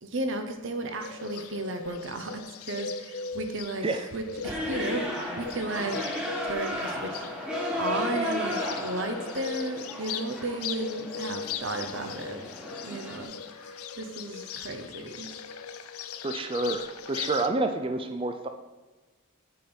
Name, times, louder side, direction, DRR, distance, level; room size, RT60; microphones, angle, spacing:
voice 1, 0.0-6.0 6.4-7.3 7.8-12.4 12.8-15.3, right 2 dB, 60° right, 6 dB, 0.9 m, -34 dB
Bird, 1.0-17.5, left 6 dB, 80° left, 0.5 m, -38 dB
sound 1, 4.4-13.2, equal, 5° right, 1.2 m, -34 dB
voice 2, 16.2-18.5, right 2 dB, 25° right, 6 dB, 0.4 m, -28 dB
8.9 x 5.2 x 4.4 m, 1.2 s
head